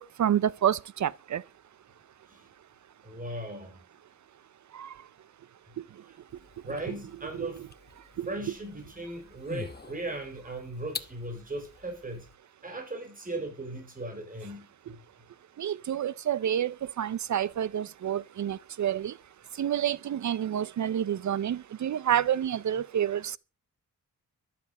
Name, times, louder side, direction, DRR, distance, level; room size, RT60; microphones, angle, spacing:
voice 1, 0.0-1.4 15.6-19.0 19.6-23.4, right 10 dB, 60° right, 0.6 m, -28 dB
voice 2, 3.0-3.9 6.0-6.2 6.6-7.7 8.2-12.3 12.6-15.0, right 2 dB, 25° right, 4.5 m, -38 dB
sound 1, 6.3-12.4, left 5 dB, 30° left, 1.0 m, -46 dB
13.0 x 12.0 x 5.3 m
wide cardioid pair, 130°, 33 cm